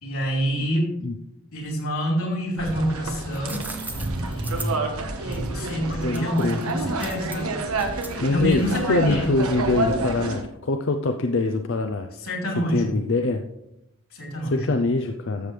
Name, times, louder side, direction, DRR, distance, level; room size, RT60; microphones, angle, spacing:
voice 1, 0.0-0.9 1.5-3.8 4.2-4.9 5.2-7.5 7.9-9.4 12.2-13.0 14.1-14.7, equal, 85° left, -1 dB, 3.7 m, -27 dB
sound 1, 2.6-10.4, right 2 dB, 85° right, 1.4 m, -29 dB
sound 2, 3.1-9.0, right 3 dB, 10° right, 0.7 m, -40 dB
voice 2, 6.0-6.6 8.2-8.6 8.9-12.1 12.7-13.4 14.4-15.5, left 3 dB, 55° left, 5 dB, 0.5 m, -24 dB
13.5 x 7.2 x 3.3 m, 0.85 s
head